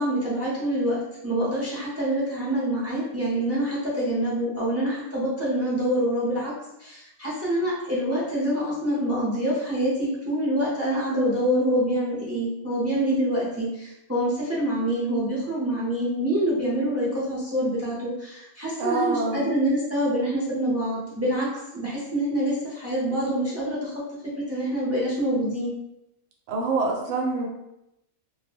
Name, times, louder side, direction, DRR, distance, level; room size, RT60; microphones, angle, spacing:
voice 1, 0.0-6.5 6.8-21.5 21.7-23.9 24.5-25.7, right 1 dB, 20° right, -8 dB, 0.4 m, -26 dB
voice 2, 18.8-19.5 26.5-27.5, right 4 dB, 70° right, 0 dB, 0.9 m, -26 dB
2.1 x 2.1 x 3.3 m, 0.86 s
omnidirectional pair, 1.4 m